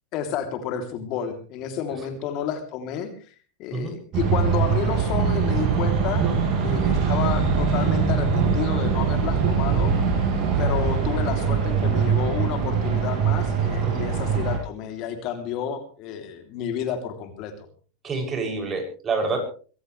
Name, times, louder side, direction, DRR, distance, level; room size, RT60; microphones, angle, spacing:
voice 1, 0.1-3.3 3.6-6.3 6.6-9.9 10.6-17.5, left 8 dB, 50° left, 6 dB, 3.2 m, -30 dB
sound 1, 4.1-14.6, right 6 dB, 45° right, 6.8 m, -22 dB
voice 2, 18.0-19.4, right 4 dB, 25° right, 4 dB, 7.1 m, -28 dB
23.5 x 16.0 x 3.3 m, 0.39 s
hypercardioid pair, 100°, 0 cm